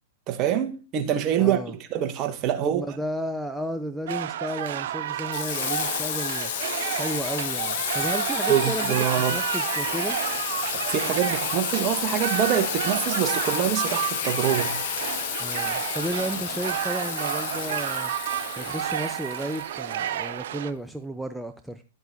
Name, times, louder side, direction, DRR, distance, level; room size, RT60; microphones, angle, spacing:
voice 1, 0.3-2.9 8.5-9.4 10.9-14.8, right 10 dB, 35° right, 1.3 m, -25 dB
voice 2, 1.4-1.7 2.7-6.5 6.9-9.0 9.3-10.2 15.4-18.1 18.6-21.8, right 1 dB, ahead, 0.6 m, -33 dB
sound 1, 4.1-20.7, right 11 dB, 60° right, 0.7 m, -30 dB
Water tap faucet / Sink (filling or washing), 5.3-20.1, left 13 dB, 55° left, 0.8 m, -31 dB
10.5 x 7.9 x 2.7 m
hypercardioid pair, 115°, 0 cm